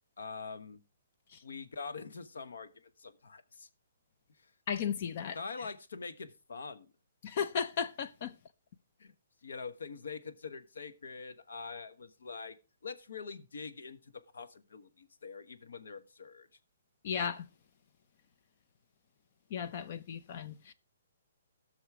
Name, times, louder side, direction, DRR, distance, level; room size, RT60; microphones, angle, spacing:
voice 1, 0.2-0.8 1.4-3.7 4.4-4.5 5.3-6.9 9.0-9.1 9.4-12.6 12.8-16.5, left 5 dB, 90° left, 1.2 m, -44 dB
voice 2, 4.7-5.7 7.2-8.3 17.0-17.5 19.5-20.7, left 7 dB, 35° left, 0.5 m, -35 dB
15.0 x 6.4 x 4.7 m
hypercardioid pair, 170°, 0 cm